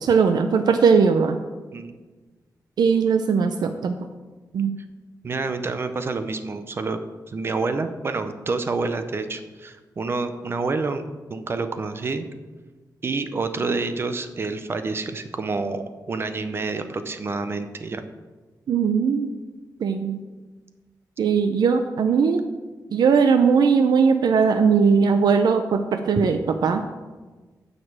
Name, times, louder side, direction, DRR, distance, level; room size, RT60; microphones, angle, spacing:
voice 1, 0.0-1.4 2.8-4.0 4.5-4.8 18.7-19.3 19.8-20.2 21.2-22.4 22.9-26.8, right 5 dB, 90° right, 7 dB, 0.6 m, -19 dB
voice 2, 5.2-7.0 7.3-12.3 13.0-18.1, right 3 dB, 35° right, 9 dB, 0.6 m, -28 dB
9.5 x 5.1 x 7.6 m, 1.3 s
wide cardioid pair, 180°, 7 cm